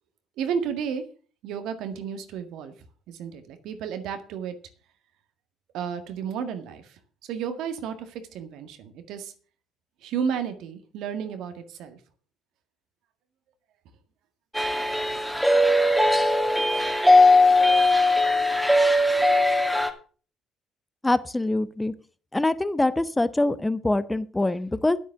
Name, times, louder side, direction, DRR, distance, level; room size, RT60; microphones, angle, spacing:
voice 1, 0.4-1.0 1.4-2.7 3.1-4.6 5.7-7.0 7.3-9.3 10.0-12.0, right 7 dB, 75° right, 8 dB, 1.8 m, -32 dB
sound 1, 14.5-19.9, left 2 dB, ahead, 2.3 m, -19 dB
voice 2, 21.0-21.9 22.3-25.0, left 2 dB, 15° left, 15 dB, 1.1 m, -24 dB
9.5 x 8.4 x 7.0 m, 0.40 s
hypercardioid pair, 60°, 0 cm